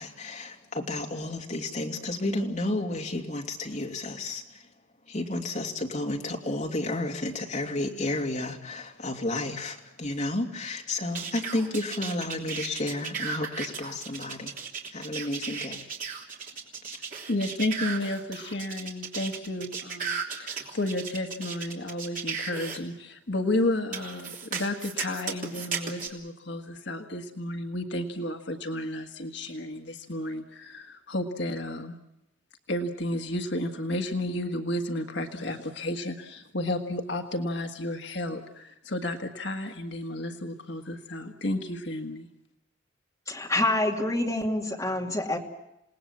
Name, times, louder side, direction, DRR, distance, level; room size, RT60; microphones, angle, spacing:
voice 1, 0.0-4.7 5.1-14.5 14.9-15.8, left 2 dB, 35° left, 1 dB, 2.8 m, -32 dB
sound 1, 11.2-22.8 23.9-26.1, right 5 dB, 40° right, 3.2 m, -35 dB
voice 2, 17.3-31.9 32.7-42.3, left 1 dB, 60° left, 5 dB, 1.5 m, -32 dB
voice 3, 43.3-45.4, left 1 dB, 15° left, 0 dB, 2.6 m, -27 dB
28.5 x 19.0 x 7.4 m, 0.87 s
head